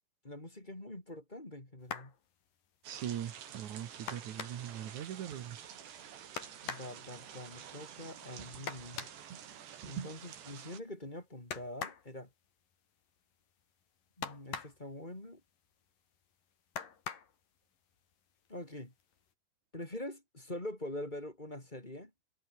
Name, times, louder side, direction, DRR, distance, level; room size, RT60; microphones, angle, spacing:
voice 1, 0.2-2.1 6.6-9.1 9.8-12.3 14.2-15.4 18.5-18.9 19.7-22.1, left 1 dB, 10° left, 3.5 m, -44 dB
sound 1, 1.8-2.2 4.1-4.8 6.4-7.0 8.7-9.2 11.5-12.1 14.2-14.9 16.8-17.4 18.5-18.6 19.0-19.2, left 7 dB, 55° left, 4.6 m, -42 dB
sound 2, 2.8-10.8, right 9 dB, 80° right, 5.0 m, -48 dB
voice 2, 2.9-5.6, right 10 dB, 55° right, 2.5 m, -41 dB
omnidirectional pair, 4.8 m